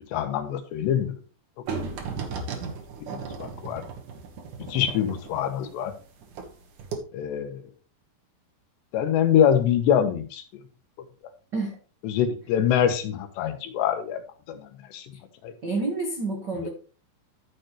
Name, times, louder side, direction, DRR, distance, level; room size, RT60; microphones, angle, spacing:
voice 1, 0.1-1.1 3.1-3.8 4.7-5.9 7.1-7.6 8.9-10.4 12.0-14.2 14.5-14.6 14.9-15.0 15.4-15.5, left 9 dB, 80° left, 7 dB, 3.4 m, -24 dB
sound 1, 1.7-6.5 6.8-7.0, right 5 dB, 55° right, 2.6 m, -35 dB
voice 2, 15.6-16.7, right 3 dB, 80° right, 1 dB, 0.9 m, -29 dB
13.0 x 6.8 x 3.2 m, 0.35 s
omnidirectional pair, 4.9 m